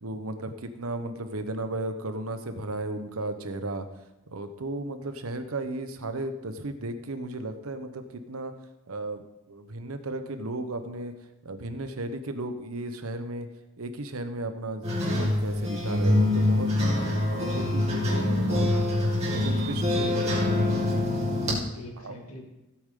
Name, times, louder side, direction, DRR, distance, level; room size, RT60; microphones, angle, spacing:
voice 1, 0.0-3.9 4.3-8.5 8.9-9.2 9.5-11.1 11.4-13.5 13.8-18.7 19.3-20.4 21.5-22.2, right 2 dB, 80° right, 9 dB, 1.0 m, -35 dB
sound 1, 14.8-21.6, left 1 dB, 30° right, 2.7 m, -25 dB
voice 2, 18.5-18.9 21.7-22.4, left 1 dB, 85° left, 0 dB, 2.5 m, -43 dB
16.0 x 8.7 x 3.8 m, 0.96 s
head